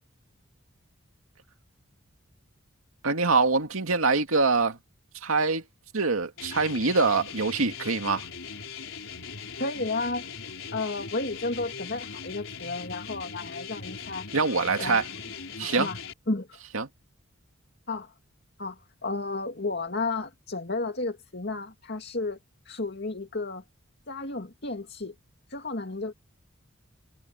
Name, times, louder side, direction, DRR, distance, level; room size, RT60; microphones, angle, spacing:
voice 1, 3.0-4.8 5.2-5.6 5.9-8.2 14.3-15.0 15.6-15.9 16.7-16.9, right 4 dB, 80° right, 2.2 m, -24 dB
sound 1, 6.4-16.1, left 5 dB, 70° left, 4.2 m, -40 dB
voice 2, 9.6-10.2 10.7-14.3 14.8-15.0 15.6-16.0 16.3-16.6 17.9-18.1 18.6-22.4 22.7-23.6 24.1-25.1 25.5-26.1, left 3 dB, 50° left, 2.3 m, -32 dB
head